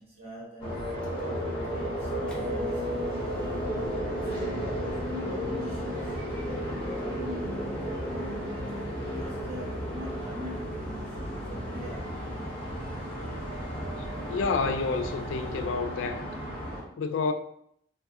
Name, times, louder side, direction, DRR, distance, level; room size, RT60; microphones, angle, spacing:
voice 1, 0.0-3.2 3.9-12.2, equal, 30° right, 1.1 m, -44 dB
sound 1, 0.6-16.8, equal, 30° left, 1.2 m, -33 dB
Microwave oven, 0.7-15.8, equal, 5° left, 0.5 m, -47 dB
sound 2, 3.6-16.6, right 3 dB, 65° right, 0.4 m, -47 dB
voice 2, 14.3-16.3 17.0-17.3, left 4 dB, 80° left, 0.3 m, -29 dB
2.6 x 2.4 x 3.4 m
head